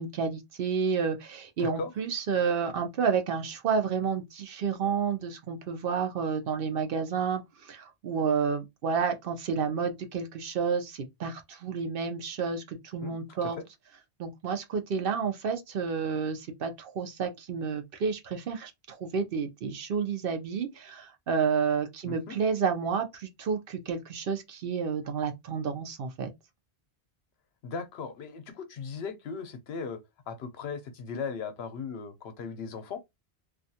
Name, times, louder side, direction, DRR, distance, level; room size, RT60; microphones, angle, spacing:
voice 1, 0.0-13.6 14.2-26.3, right 6 dB, 65° right, 0.7 m, -30 dB
voice 2, 1.6-1.9 13.0-13.2 13.4-13.6 22.0-22.4 27.6-30.0 30.3-33.0, left 5 dB, 75° left, 0.8 m, -37 dB
2.4 x 2.3 x 2.6 m
omnidirectional pair, 1.1 m